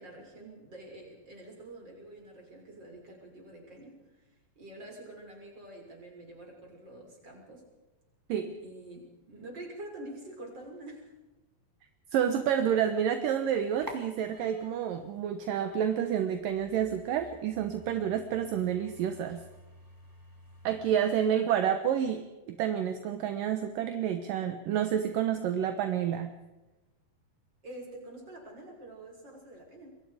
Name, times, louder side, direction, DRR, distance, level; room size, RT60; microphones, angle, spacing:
voice 1, 0.0-4.3 4.6-7.7 8.6-11.1 27.6-29.9, right 1 dB, 30° right, 1 dB, 6.6 m, -47 dB
voice 2, 12.1-19.4 20.6-26.3, right 9 dB, 70° right, 8 dB, 2.7 m, -29 dB
sound 1, 13.4-21.0, equal, 5° right, 2.6 m, -51 dB
28.0 x 22.5 x 5.0 m, 1.1 s
omnidirectional pair, 4.2 m